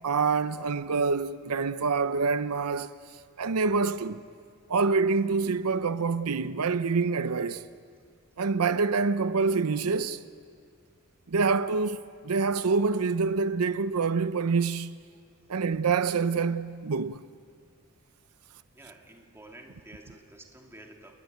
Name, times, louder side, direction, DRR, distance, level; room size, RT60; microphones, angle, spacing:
voice 1, 0.0-2.9 3.4-4.2 4.7-7.6 8.4-10.2 11.3-14.9 15.5-17.2, right 4 dB, 85° right, 0.7 m, -26 dB
voice 2, 18.7-21.2, right 1 dB, 10° right, 2.5 m, -50 dB
29.0 x 20.5 x 9.3 m
head